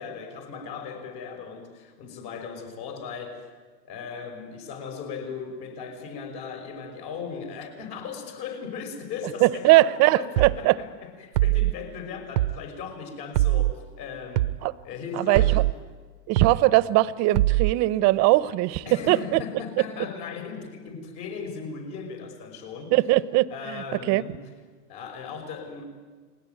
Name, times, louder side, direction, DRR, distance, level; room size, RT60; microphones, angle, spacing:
voice 1, 0.0-3.4 3.8-9.9 10.1-14.6 14.8-15.6 18.9-23.0 23.5-24.4 24.9-25.8, left 6 dB, 50° left, 5 dB, 5.7 m, -37 dB
voice 2, 9.4-10.8 14.6-14.7 15.2-15.6 16.3-19.4 22.9-23.5 24.1-24.2, right 18 dB, 35° right, 18 dB, 0.8 m, -20 dB
sound 1, 10.4-10.6 11.3-11.7 12.4-12.6 13.3-13.7 14.4-14.6 15.3-15.7 16.4-16.6 17.3-17.7, right 17 dB, 70° right, 0.8 m, -22 dB
30.0 x 21.0 x 9.5 m, 1.5 s
hypercardioid pair, 125°, 49 cm